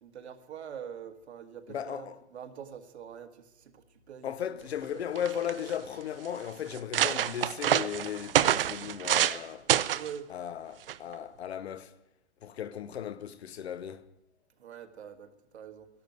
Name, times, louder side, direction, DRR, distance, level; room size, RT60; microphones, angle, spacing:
voice 1, 0.0-5.0 9.9-10.3 14.6-15.9, right 8 dB, 70° right, 1.7 m, -45 dB
voice 2, 1.7-2.2 4.2-9.7 10.3-11.9 12.4-14.1, left 9 dB, 65° left, 1.0 m, -36 dB
sound 1, 4.8-4.9 5.2-5.7 6.3-6.4 6.7-9.4 9.7-10.1 10.9-11.1, right 11 dB, 55° right, 0.6 m, -27 dB
12.5 x 11.5 x 9.3 m
hypercardioid pair, 175°, 34 cm